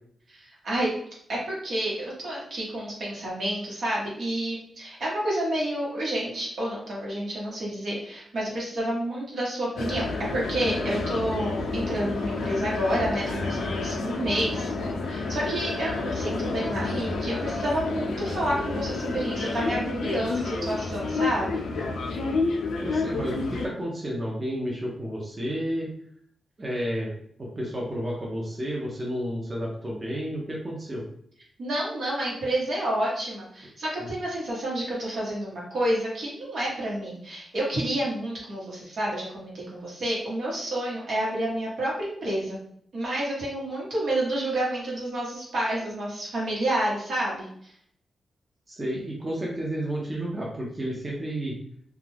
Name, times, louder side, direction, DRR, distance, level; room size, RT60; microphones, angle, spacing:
voice 1, 0.3-0.9 1.3-10.0 10.3-14.7 15.1-21.6 31.6-42.6 42.9-47.5, right 1 dB, 70° right, -5 dB, 1.1 m, -29 dB
sound 1, 9.8-23.7, left 3 dB, 85° left, 0.4 m, -30 dB
voice 2, 22.8-25.9 26.6-27.1 27.6-31.0 34.0-34.1 48.7-51.5, equal, 30° right, -3 dB, 0.7 m, -31 dB
2.4 x 2.3 x 3.2 m, 0.65 s
cardioid pair, 85°, 0 cm